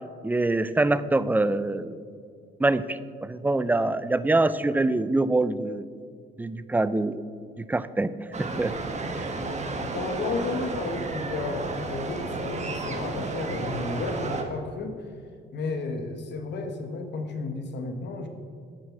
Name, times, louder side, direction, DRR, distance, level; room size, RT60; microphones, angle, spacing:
voice 1, 0.2-2.0 2.6-5.8 6.4-7.2 7.6-8.7 9.1-9.3, right 2 dB, 10° right, 14 dB, 0.4 m, -25 dB
sound 1, 8.3-14.4, right 3 dB, 35° right, 1.4 m, -32 dB
voice 2, 9.4-15.0 15.5-18.3, left 3 dB, 60° left, 6 dB, 1.2 m, -33 dB
9.5 x 6.9 x 6.0 m, 2.3 s
cardioid pair, 90°, 20 cm